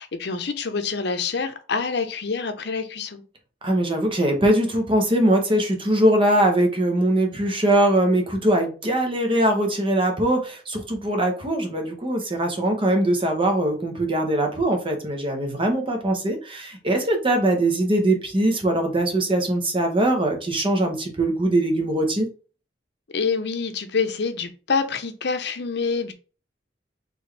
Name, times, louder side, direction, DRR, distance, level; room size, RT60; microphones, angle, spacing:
voice 1, 0.0-3.2 23.1-26.1, left 5 dB, 65° left, 0.7 m, -26 dB
voice 2, 3.6-22.3, right 1 dB, 30° right, 1.0 m, -21 dB
4.3 x 3.2 x 3.3 m
head